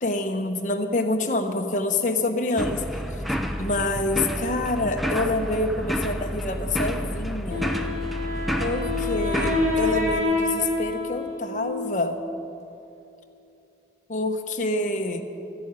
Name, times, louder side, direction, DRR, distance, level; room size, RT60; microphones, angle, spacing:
voice 1, 0.0-2.8 3.6-7.7 8.6-12.2 14.1-15.2, left 2 dB, 45° left, 5 dB, 1.0 m, -27 dB
sound 1, 2.6-10.2, equal, ahead, 0.5 m, -29 dB
Wind instrument woodwind instrument, 7.5-12.3, left 2 dB, 40° right, 2.3 m, -27 dB
12.5 x 8.2 x 8.9 m, 2.8 s
head